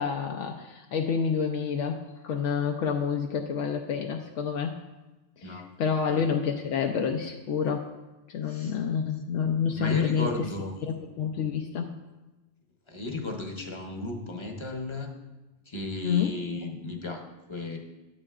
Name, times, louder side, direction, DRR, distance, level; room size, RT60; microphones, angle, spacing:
voice 1, 0.0-4.8 5.4-7.9 8.3-10.5 10.8-11.9 16.0-16.4, left 7 dB, 80° left, 2 dB, 0.9 m, -28 dB
voice 2, 6.1-6.4 8.5-8.7 9.7-10.7 12.9-15.1 15.7-17.2 17.5-17.8, left 2 dB, 30° left, 2 dB, 0.8 m, -34 dB
9.8 x 8.7 x 2.4 m, 1.1 s
omnidirectional pair, 1.3 m